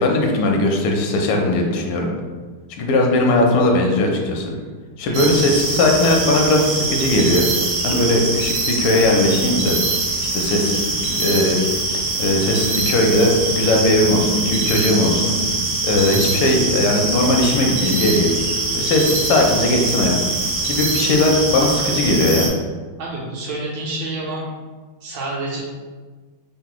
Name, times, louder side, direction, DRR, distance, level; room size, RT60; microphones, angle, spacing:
voice 1, 0.0-2.1 2.8-4.5 5.0-7.5 7.8-9.8 10.3-11.6 11.9-15.3 15.8-18.3 18.7-20.1 20.6-22.5, left 1 dB, 80° left, 1 dB, 1.4 m, -18 dB
sound 1, 5.1-22.5, right 2 dB, 85° right, 1.6 m, -23 dB
voice 2, 23.0-24.5 25.0-25.6, right 2 dB, 70° right, -5 dB, 1.3 m, -28 dB
3.9 x 2.0 x 2.9 m, 1.4 s
omnidirectional pair, 2.3 m